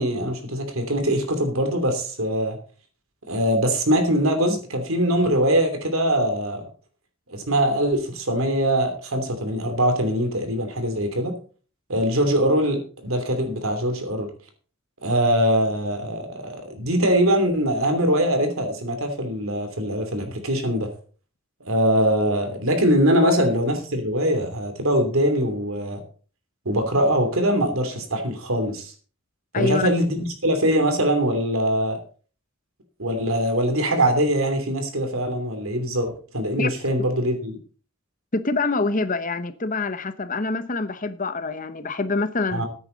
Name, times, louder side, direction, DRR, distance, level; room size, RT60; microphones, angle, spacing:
voice 1, 0.0-2.6 3.3-6.6 7.3-11.3 11.9-14.3 15.0-20.9 21.6-26.0 26.6-28.9 29.5-32.0 33.0-37.6 42.5-42.7, equal, 75° right, 2.9 m, -22 dB
voice 2, 29.5-29.9 36.6-36.9 38.3-42.6, left 3 dB, 40° left, 0.9 m, -26 dB
14.5 x 9.3 x 4.0 m
head